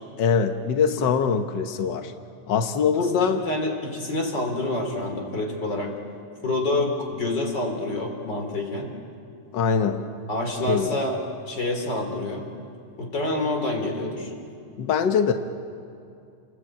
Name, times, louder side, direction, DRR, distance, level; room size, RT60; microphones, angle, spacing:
voice 1, 0.2-2.1 2.5-3.4 9.5-10.0 10.7-10.9 14.8-15.3, left 6 dB, 70° left, 6 dB, 1.0 m, -22 dB
voice 2, 2.9-5.9 6.4-8.9 10.3-11.2 11.4-12.4 13.0-14.3, left 2 dB, 35° left, 3 dB, 4.0 m, -27 dB
30.0 x 20.0 x 9.0 m, 2.5 s
omnidirectional pair, 3.4 m